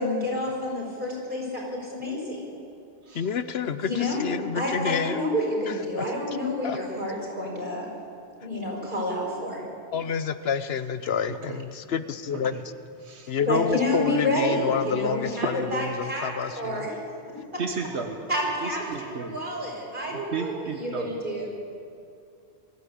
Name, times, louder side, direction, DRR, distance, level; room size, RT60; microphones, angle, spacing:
voice 1, 0.0-2.5 3.8-4.2 4.5-7.9 8.4-9.6 13.5-16.9 17.3-17.6 18.3-21.5, left 1 dB, 50° right, -3 dB, 5.8 m, -29 dB
voice 2, 3.1-5.2 5.7-6.0 6.6-6.8 9.9-12.6 13.3-16.9, left 7 dB, 70° left, 12 dB, 1.0 m, -29 dB
voice 3, 11.3-11.6 12.3-12.6 13.0-13.4 17.6-18.2 18.6-19.4 20.1-21.2, right 5 dB, 85° right, 4 dB, 1.6 m, -34 dB
22.0 x 14.0 x 8.6 m, 2.5 s
omnidirectional pair, 1.1 m